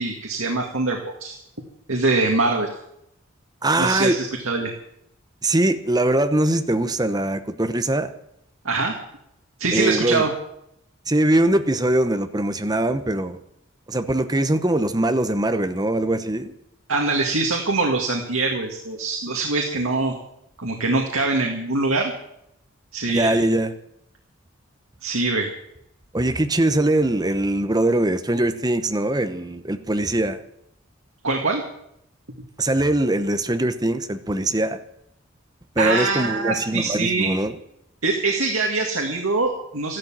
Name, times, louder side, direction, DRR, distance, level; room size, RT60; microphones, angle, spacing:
voice 1, 0.0-1.4 1.9-2.7 3.8-4.7 8.6-8.9 9.6-10.3 16.9-20.1 20.6-22.1 22.9-23.4 25.0-25.5 31.2-31.6 35.8-37.3 38.0-40.0, right 3 dB, 90° right, 2 dB, 2.1 m, -23 dB
voice 2, 3.6-4.2 5.4-8.1 9.7-10.3 11.1-13.4 13.9-16.5 23.1-23.7 26.1-30.4 32.6-34.8 35.8-37.5, right 1 dB, 20° right, 9 dB, 0.9 m, -22 dB
14.0 x 12.0 x 7.5 m, 0.77 s
head